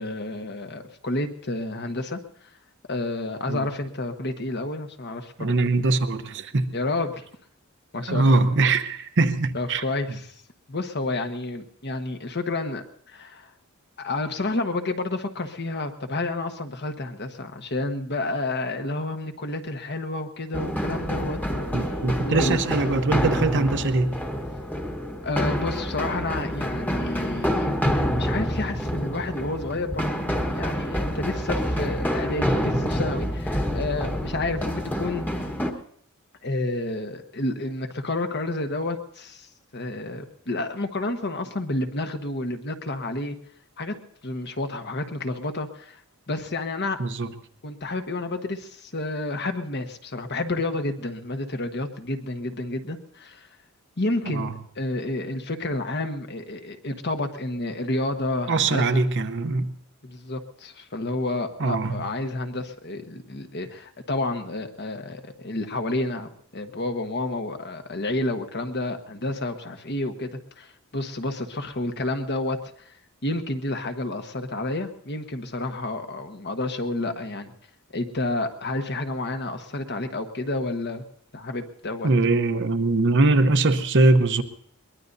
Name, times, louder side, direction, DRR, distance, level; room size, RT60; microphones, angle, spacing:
voice 1, 0.0-2.2 2.9-5.5 6.7-7.3 7.9-8.4 9.5-10.3 10.7-13.5 14.0-21.8 22.2-22.6 25.2-35.4 36.4-39.5 39.7-43.3 43.8-43.9 44.2-46.0 46.3-47.0 47.6-53.5 54.0-59.0 60.0-72.9 73.2-77.5 77.9-81.0 81.3-82.1, left 2 dB, 50° left, 1.3 m, -30 dB
voice 2, 5.4-6.7 8.1-9.8 21.7-24.1 47.0-47.3 54.3-54.6 58.5-59.7 61.6-62.0 82.0-84.4, right 3 dB, 55° right, 0.9 m, -22 dB
sound 1, 20.5-35.7, equal, 10° left, 1.3 m, -27 dB
Wind instrument woodwind instrument, 21.5-26.7, equal, 90° left, 6.4 m, -45 dB
22.5 x 20.5 x 2.7 m
head